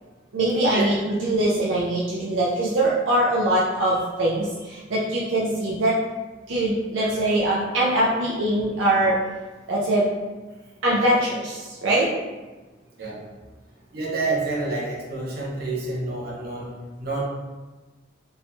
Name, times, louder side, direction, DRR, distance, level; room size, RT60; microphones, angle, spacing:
voice 1, 0.3-6.0 6.5-9.2 9.7-10.1 10.8-12.1 13.0-13.1, right 1 dB, 80° right, -6 dB, 0.6 m, -22 dB
voice 2, 13.9-16.7 17.0-17.2, right 3 dB, 55° right, -4 dB, 1.0 m, -28 dB
3.8 x 2.9 x 2.6 m, 1.2 s
head